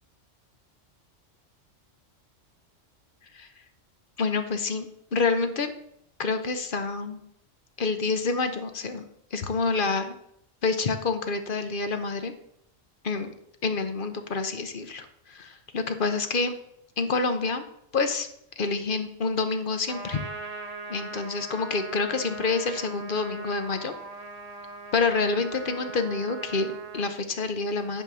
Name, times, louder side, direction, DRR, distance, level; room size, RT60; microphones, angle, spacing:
voice 1, 4.2-5.7 6.2-7.2 7.8-9.0 9.3-10.1 10.6-12.3 13.0-13.3 13.6-16.5 17.0-17.6 17.9-18.3 18.6-20.2 20.9-23.9 24.9-28.0, left 4 dB, 45° left, 8 dB, 1.0 m, -27 dB
Trumpet, 19.9-27.1, right 3 dB, 35° right, 0.9 m, -40 dB
11.0 x 4.4 x 6.9 m, 0.74 s
omnidirectional pair, 1.3 m